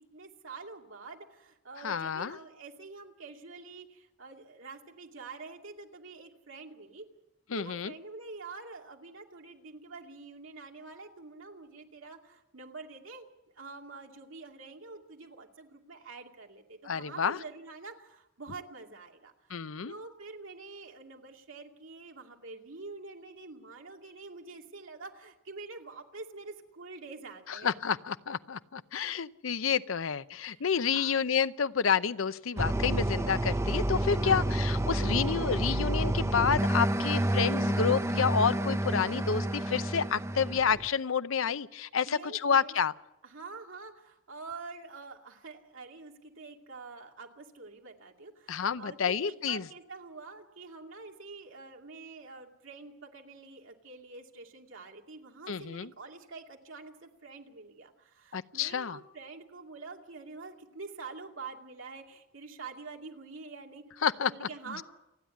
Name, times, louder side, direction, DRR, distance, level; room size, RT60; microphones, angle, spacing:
voice 1, 0.1-7.1 7.5-13.2 13.5-19.6 19.9-27.8 30.5-31.2 34.1-34.5 42.1-42.8 43.2-63.8 64.3-64.8, right 4 dB, 75° right, 2 dB, 2.5 m, -46 dB
voice 2, 1.8-2.4 7.5-7.9 16.9-17.4 19.5-19.9 27.6-42.9 48.5-49.6 55.5-55.9 58.3-59.0 64.0-64.5, left 6 dB, 85° left, 15 dB, 0.7 m, -29 dB
sound 1, 32.6-40.9, right 1 dB, 15° right, 0.7 m, -29 dB
28.5 x 10.0 x 9.5 m, 0.90 s
head